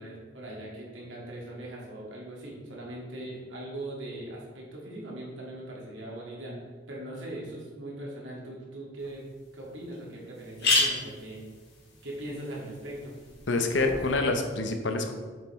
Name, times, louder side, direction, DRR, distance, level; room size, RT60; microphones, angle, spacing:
voice 1, 0.0-6.6 6.9-11.4 12.0-13.1, right 1 dB, 80° right, -4 dB, 1.9 m, -40 dB
sound 1, 9.0-9.1 9.6-9.7 9.9-10.0 10.3-14.1, left 2 dB, 55° left, 1.9 m, -31 dB
voice 2, 13.5-15.1, left 3 dB, 70° left, 5 dB, 0.8 m, -26 dB
7.3 x 5.6 x 3.1 m, 1.4 s
head